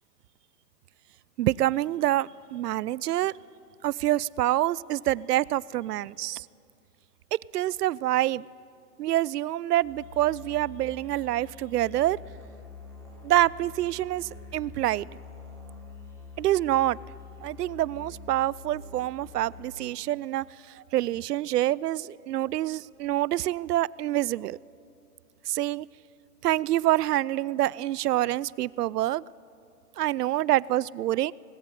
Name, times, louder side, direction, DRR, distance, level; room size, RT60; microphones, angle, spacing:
voice 1, 1.4-3.3 3.8-6.5 7.3-8.4 9.0-12.2 13.2-15.1 16.4-17.0 17.4-20.5 20.7-24.6 25.5-25.9 26.4-29.2 30.0-31.3, right 14 dB, 75° right, 23 dB, 0.5 m, -26 dB
Musical instrument, 9.8-20.0, left 4 dB, 5° left, 3.4 m, -46 dB
19.5 x 17.0 x 9.8 m, 2.5 s
hypercardioid pair, 155°, 47 cm